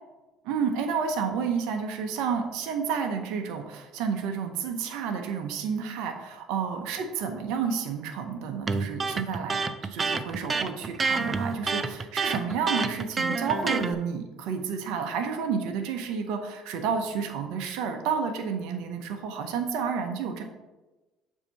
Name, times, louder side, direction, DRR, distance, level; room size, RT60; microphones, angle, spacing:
voice 1, 0.4-9.6 9.9-20.4, right 6 dB, 75° right, 4 dB, 0.7 m, -30 dB
Electric guitar, 8.7-13.9, right 4 dB, 30° right, 0.5 m, -28 dB
7.1 x 2.8 x 5.6 m, 1.1 s
supercardioid pair, 85°, 0 cm